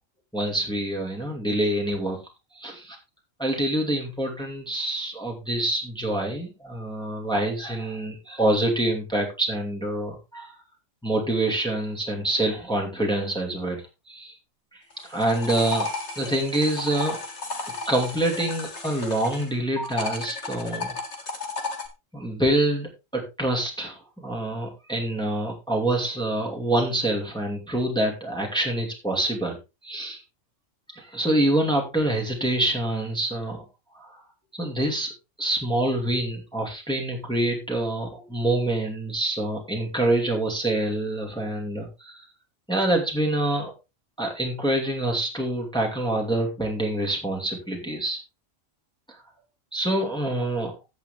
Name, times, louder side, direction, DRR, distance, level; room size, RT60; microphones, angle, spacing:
voice 1, 0.3-2.2 2.5-3.0 3.4-10.6 11.0-14.4 14.7-15.9 16.2-17.2 17.9-20.9 22.1-29.6 29.8-30.2 30.9-33.6 33.9-34.2 34.5-35.1 35.4-42.3 42.7-43.7 44.2-48.2 49.1-49.2 49.7-50.7, right 1 dB, 5° left, 1 dB, 2.5 m, -26 dB
sound 1, 14.9-19.5 19.8-21.9, left 3 dB, 60° left, 2.5 m, -33 dB
16.0 x 6.3 x 3.5 m, 0.26 s
omnidirectional pair, 1.3 m